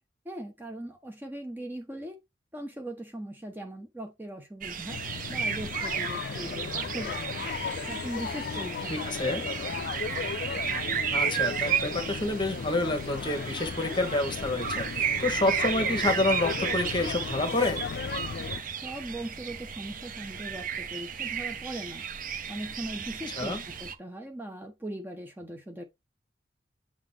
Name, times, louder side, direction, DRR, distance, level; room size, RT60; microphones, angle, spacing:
voice 1, 0.2-2.2 2.5-5.0 5.3-7.5 7.9-9.5 18.8-22.0 22.5-25.8, right 1 dB, 10° right, 0.8 m, -40 dB
sound 1, 4.6-23.9, right 7 dB, 50° right, 0.8 m, -33 dB
sound 2, 4.9-18.6, left 6 dB, 60° left, 0.3 m, -36 dB
voice 2, 8.9-9.4 11.1-17.8 23.4-23.6, left 2 dB, 25° left, 1.6 m, -28 dB
7.3 x 4.0 x 3.3 m
head